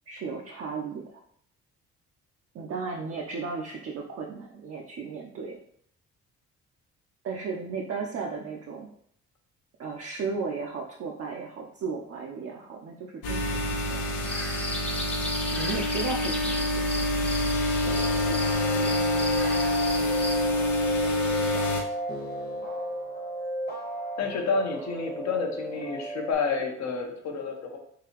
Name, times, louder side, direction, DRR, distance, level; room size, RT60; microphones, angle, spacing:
voice 1, 0.1-1.2 2.5-5.6 7.2-8.9 9.8-14.1 15.5-17.2 18.3-19.0, right 4 dB, 50° right, 0 dB, 0.5 m, -35 dB
sound 1, 13.2-21.8, left 1 dB, 90° left, 0.7 m, -27 dB
sound 2, 14.2-20.3, left 1 dB, 5° left, 0.6 m, -35 dB
sound 3, 17.8-26.3, right 1 dB, 35° left, 1.0 m, -34 dB
voice 2, 24.2-27.8, left 5 dB, 65° left, 2 dB, 0.8 m, -29 dB
3.8 x 2.8 x 2.9 m, 0.66 s
cardioid pair, 90°, 30 cm